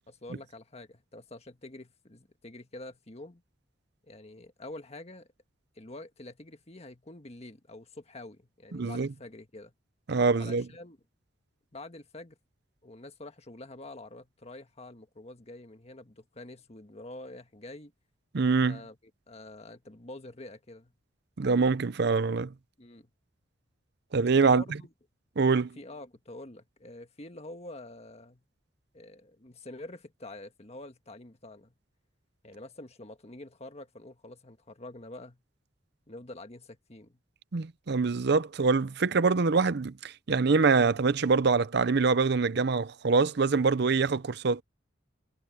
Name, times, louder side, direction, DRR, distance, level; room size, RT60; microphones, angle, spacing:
voice 1, 0.1-3.4 4.1-5.3 5.7-9.7 10.4-11.0 11.7-12.4 12.8-17.9 18.7-19.0 19.3-20.9 22.8-23.1 24.4-24.9 25.8-28.4 28.9-31.7 32.4-35.4 36.1-37.2, left 2 dB, 35° left, 1.6 m, -46 dB
voice 2, 8.7-9.1 10.1-10.6 18.3-18.8 21.4-22.5 24.1-24.6 25.4-25.7 37.5-44.6, right 4 dB, 60° right, 0.6 m, -24 dB
head